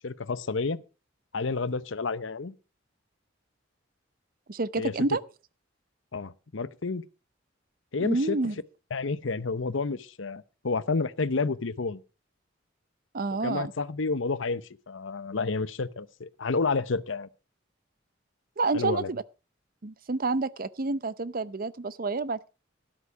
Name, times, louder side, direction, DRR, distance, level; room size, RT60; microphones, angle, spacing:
voice 1, 0.0-0.8 1.3-2.5 4.8-4.9 6.1-7.0 7.9-8.4 8.9-12.0 13.4-17.3 18.7-19.1, left 4 dB, 80° left, 0.8 m, -30 dB
voice 2, 4.5-5.2 8.0-8.5 13.1-13.7 18.6-19.2 19.8-22.5, right 3 dB, 50° right, 0.7 m, -29 dB
13.0 x 11.0 x 4.8 m
head